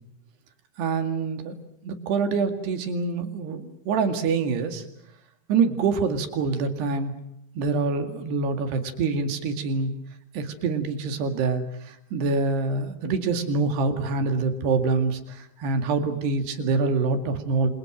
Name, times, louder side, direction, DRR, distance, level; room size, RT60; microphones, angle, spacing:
voice 1, 0.8-1.6 1.8-4.8 5.5-7.1 7.6-9.9 10.3-17.7, right 4 dB, 85° right, 7 dB, 4.3 m, -25 dB
28.0 x 27.5 x 6.3 m, 0.78 s
omnidirectional pair, 4.6 m